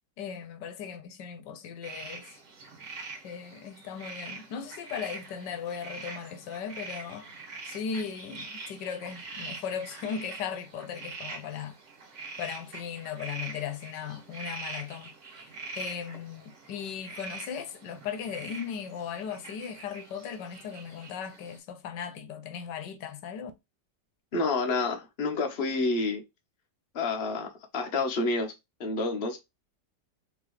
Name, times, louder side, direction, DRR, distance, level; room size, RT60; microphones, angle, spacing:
voice 1, 0.2-2.3 3.2-7.3 7.7-11.7 12.4-15.1 15.4-23.5, left 7 dB, 80° left, 1.3 m, -37 dB
sound 1, 1.8-21.6, right 3 dB, 45° right, 1.6 m, -44 dB
voice 2, 24.3-26.2 26.9-28.5 28.8-29.4, left 3 dB, 40° left, 1.1 m, -29 dB
4.1 x 3.4 x 3.1 m
omnidirectional pair, 1.8 m